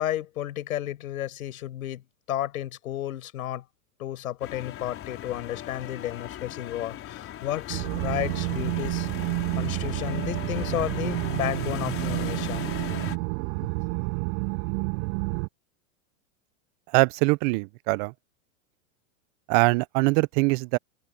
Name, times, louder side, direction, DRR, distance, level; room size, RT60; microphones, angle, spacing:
voice 1, 0.0-2.0 2.3-3.6 4.0-9.1 9.6-12.7, left 12 dB, 85° left, 5.4 m, -32 dB
sound 1, 4.4-13.2, left 12 dB, 30° left, 4.0 m, -38 dB
sound 2, 7.7-15.5, right 37 dB, 55° right, 6.3 m, -29 dB
voice 2, 16.9-18.1 19.5-20.8, right 27 dB, 40° right, 0.4 m, -22 dB
supercardioid pair, 130°, 41 cm